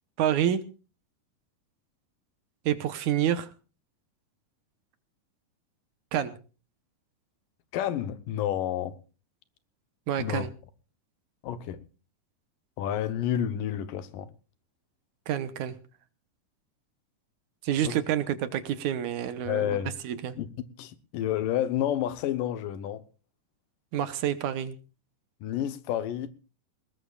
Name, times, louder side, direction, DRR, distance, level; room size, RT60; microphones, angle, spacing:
voice 1, 0.2-0.6 2.7-3.5 6.1-6.4 10.1-10.5 15.3-15.8 17.6-20.3 23.9-24.8, right 10 dB, 70° right, 2.3 m, -28 dB
voice 2, 7.7-9.0 10.2-10.5 11.4-11.8 12.8-14.3 17.8-17.9 19.5-19.9 20.4-20.5 20.8-23.0 25.4-26.3, left 10 dB, 80° left, 2.6 m, -30 dB
20.0 x 20.0 x 2.4 m
omnidirectional pair, 3.8 m